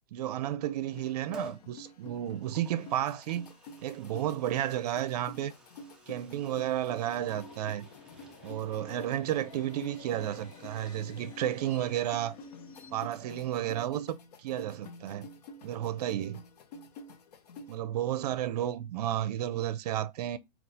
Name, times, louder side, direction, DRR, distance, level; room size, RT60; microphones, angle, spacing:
voice 1, 0.1-3.5 3.8-5.5 6.1-7.8 8.4-12.4 12.9-15.3 15.6-16.4 17.7-20.4, right 12 dB, 75° right, 0.5 m, -32 dB
sound 1, 0.9-17.8, left 2 dB, 80° left, 0.9 m, -50 dB
Liquid, 1.3-1.7 2.3-11.9 12.2-12.3, right 3 dB, 5° right, 0.5 m, -52 dB
Subway metro underground, 6.3-14.0, left 5 dB, 55° left, 1.1 m, -52 dB
4.1 x 2.4 x 3.6 m
supercardioid pair, 150°, 20 cm